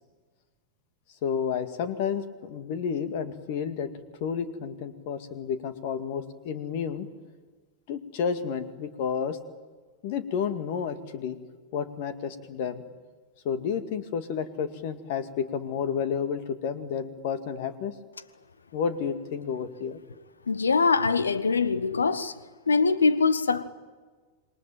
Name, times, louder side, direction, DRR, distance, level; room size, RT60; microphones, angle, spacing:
voice 1, 1.2-3.9 4.2-7.1 7.9-9.4 10.0-11.4 11.7-12.8 13.4-17.9 18.7-20.0, left 7 dB, 50° left, 2.2 m, -31 dB
voice 2, 20.5-22.4 22.7-23.7, left 4 dB, 75° left, 1.2 m, -23 dB
27.5 x 23.0 x 9.1 m
figure-of-eight pair, 90°, 0 cm